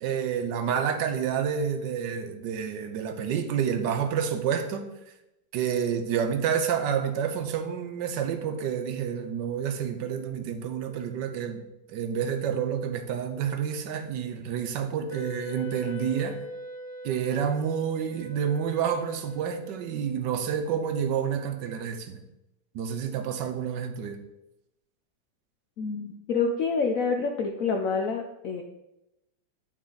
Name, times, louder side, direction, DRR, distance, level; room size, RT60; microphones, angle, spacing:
voice 1, 0.0-4.8 5.5-11.6 11.9-16.4 17.0-22.2 22.7-24.2, right 8 dB, 70° right, 7 dB, 1.3 m, -29 dB
Wind instrument woodwind instrument, 15.1-20.3, left 1 dB, 55° left, 0.9 m, -41 dB
voice 2, 25.8-28.6, left 4 dB, 80° left, 4 dB, 0.7 m, -27 dB
8.9 x 4.2 x 3.9 m, 0.91 s
omnidirectional pair, 2.1 m